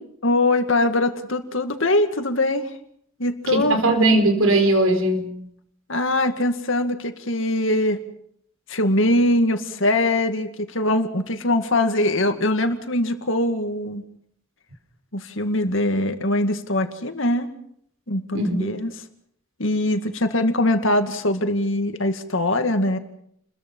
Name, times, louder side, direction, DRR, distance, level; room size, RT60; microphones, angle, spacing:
voice 1, 0.2-2.6 3.2-3.8 5.9-8.0 8.7-14.0 15.1-17.5 18.1-18.9 19.6-23.0, left 1 dB, 65° left, 7 dB, 2.2 m, -22 dB
voice 2, 3.5-5.3 18.3-18.7, right 2 dB, 75° right, 6 dB, 4.5 m, -19 dB
29.5 x 22.0 x 5.6 m, 0.71 s
head